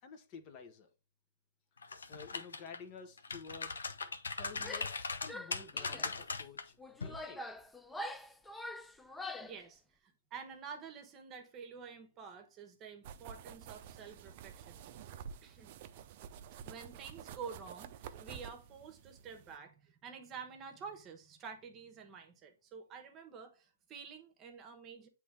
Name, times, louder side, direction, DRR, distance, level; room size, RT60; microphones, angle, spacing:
voice 1, 0.0-0.9 1.8-3.8 4.3-4.9 5.2-7.4, left 5 dB, 35° left, 0.9 m, -51 dB
sound 1, 1.8-2.8 3.2-6.6 7.0-7.2, left 4 dB, 80° left, 0.7 m, -39 dB
Female speech woman speaking / Yell, 4.6-5.0 5.3-6.1 6.8-9.6, left 1 dB, 5° left, 0.4 m, -45 dB
voice 2, 9.4-14.8 15.4-15.7 16.7-25.1, right 6 dB, 25° right, 1.1 m, -49 dB
sound 2, 13.0-19.6, right 8 dB, 45° right, 0.5 m, -50 dB
8.3 x 3.3 x 3.4 m
hypercardioid pair, 120°, 0 cm